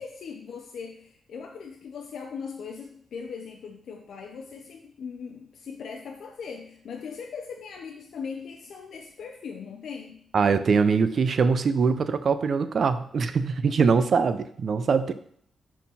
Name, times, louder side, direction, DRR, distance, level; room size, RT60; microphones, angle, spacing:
voice 1, 0.0-10.3, left 6 dB, 70° left, 2 dB, 0.6 m, -39 dB
voice 2, 10.3-15.1, right 5 dB, 50° right, 12 dB, 0.4 m, -23 dB
6.2 x 4.0 x 4.1 m, 0.64 s
cardioid pair, 125°, 0 cm